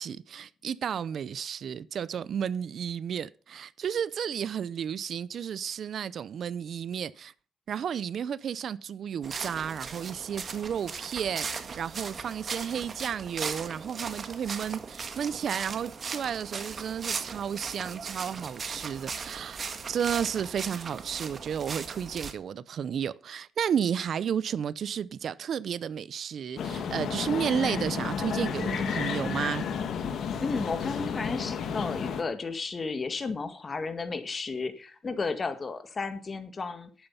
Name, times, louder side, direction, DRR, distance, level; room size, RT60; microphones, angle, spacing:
voice 1, 0.0-7.3 7.7-29.7, right 8 dB, 60° right, 0.5 m, -32 dB
sound 1, 9.2-22.3, right 5 dB, 45° right, 1.5 m, -38 dB
sound 2, 26.6-32.2, left 6 dB, 65° left, 2.1 m, -32 dB
voice 2, 30.4-37.1, left 4 dB, 35° left, 1.9 m, -33 dB
11.5 x 8.9 x 5.5 m
cardioid pair, 90°, 0 cm